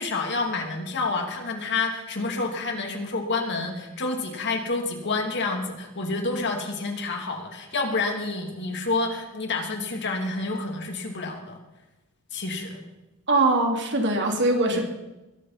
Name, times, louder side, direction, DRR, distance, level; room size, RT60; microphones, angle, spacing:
voice 1, 0.0-11.6 12.3-12.8 14.7-14.8, left 3 dB, 55° left, 3 dB, 2.8 m, -29 dB
voice 2, 13.3-14.8, right 2 dB, 55° right, 2 dB, 2.9 m, -22 dB
21.5 x 10.5 x 5.9 m, 1.0 s
head